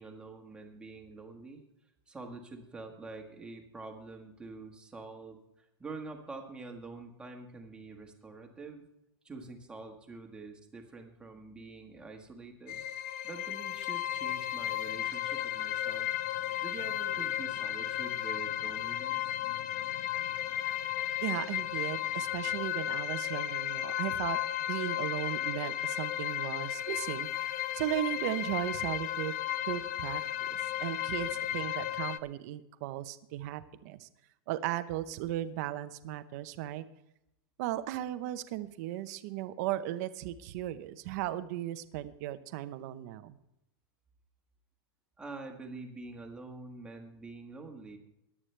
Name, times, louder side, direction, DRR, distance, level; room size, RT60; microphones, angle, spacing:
voice 1, 0.0-1.6 2.1-8.9 9.2-12.8 13.2-16.1 16.6-19.4 45.2-48.0, right 3 dB, 5° right, 2 dB, 1.5 m, -46 dB
sound 1, 12.7-32.2, left 12 dB, 45° left, 0.6 m, -34 dB
voice 2, 21.2-24.4 24.7-29.3 29.6-30.5 30.8-34.1 34.5-36.8 37.6-43.4, right 13 dB, 45° right, 12 dB, 0.9 m, -36 dB
17.5 x 11.0 x 3.3 m, 0.87 s
supercardioid pair, 165°, 13 cm